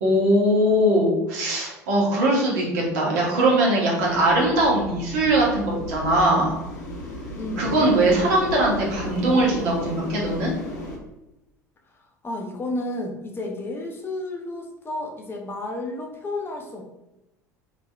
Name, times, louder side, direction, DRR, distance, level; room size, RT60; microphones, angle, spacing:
voice 1, 0.0-6.6 7.6-10.5, right 1 dB, 60° right, -3 dB, 1.1 m, -21 dB
sound 1, 3.9-11.0, left 1 dB, 75° left, 0.7 m, -35 dB
voice 2, 7.3-7.9 12.2-16.8, left 2 dB, 25° left, 1 dB, 0.5 m, -32 dB
3.0 x 2.7 x 2.3 m, 0.92 s
figure-of-eight pair, 70°, 9 cm